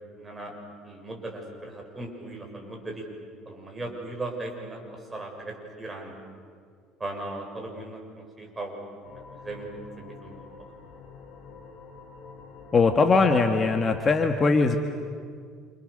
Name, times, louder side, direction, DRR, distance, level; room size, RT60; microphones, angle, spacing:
voice 1, 0.1-0.5 0.8-3.0 3.4-6.1 7.0-9.7 10.0-10.5, right 2 dB, 20° right, 1 dB, 6.6 m, -38 dB
sound 1, 9.0-14.2, left 4 dB, 60° left, 4.7 m, -46 dB
voice 2, 12.7-14.8, left 4 dB, 30° left, 5 dB, 1.8 m, -21 dB
29.0 x 28.5 x 6.8 m, 2.1 s
supercardioid pair, 105°, 0 cm